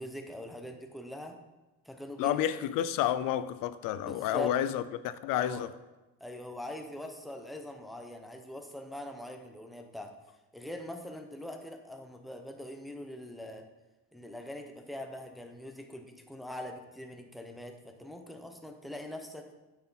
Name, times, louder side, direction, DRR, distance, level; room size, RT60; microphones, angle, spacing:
voice 1, 0.0-1.4 1.8-2.5 4.0-4.6 5.3-5.7 6.2-10.1 10.5-13.7 14.1-19.6, left 1 dB, ahead, 0.7 m, -42 dB
voice 2, 2.2-5.7, left 11 dB, 75° left, 0.5 m, -30 dB
8.4 x 5.9 x 4.0 m
cardioid pair, 125°, 33 cm